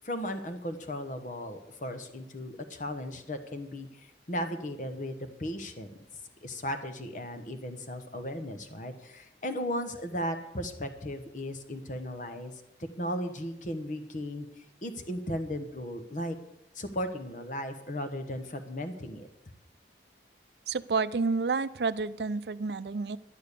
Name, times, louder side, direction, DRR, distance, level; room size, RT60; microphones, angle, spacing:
voice 1, 0.0-5.9 6.4-12.5 13.0-14.5 14.8-16.4 16.7-19.3, equal, 45° left, 7 dB, 1.1 m, -36 dB
voice 2, 20.7-23.2, right 4 dB, 70° right, 16 dB, 0.5 m, -29 dB
11.5 x 10.5 x 6.8 m, 0.85 s
head